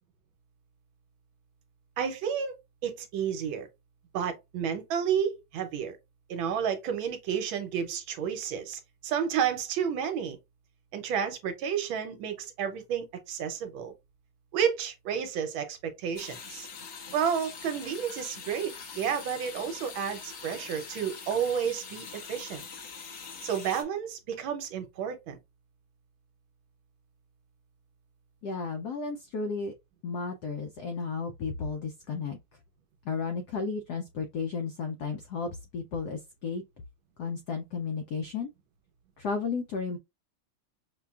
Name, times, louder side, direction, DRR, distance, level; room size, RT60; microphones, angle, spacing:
voice 1, 2.0-2.6 2.8-3.7 4.1-6.0 6.3-10.4 10.9-13.9 14.5-16.7 17.1-22.6 23.4-25.4, right 8 dB, 75° right, 1.5 m, -31 dB
sound 1, 16.1-23.8, left 5 dB, 55° left, 1.2 m, -43 dB
voice 2, 28.4-29.7 30.0-32.4 33.1-36.6 37.2-38.5 39.2-40.0, left 5 dB, 85° left, 0.8 m, -33 dB
5.7 x 2.2 x 2.3 m
omnidirectional pair, 2.3 m